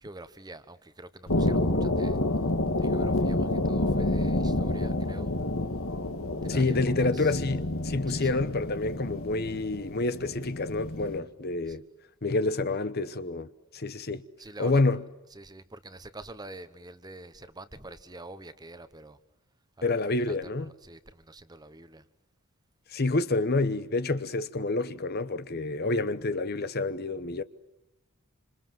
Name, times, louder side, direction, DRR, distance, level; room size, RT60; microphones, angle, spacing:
voice 1, 0.0-2.2 2.8-5.4 6.4-7.4 8.1-8.4 11.7-11.8 14.4-14.8 15.3-19.2 19.8-19.9 20.3-22.0, right 2 dB, 20° right, 1.1 m, -46 dB
sound 1, 1.3-11.2, left 1 dB, 65° left, 1.6 m, -29 dB
voice 2, 6.5-11.8 12.2-14.2 14.6-15.0 19.8-20.7 22.9-27.4, left 3 dB, 45° left, 0.9 m, -28 dB
27.0 x 26.5 x 7.6 m
head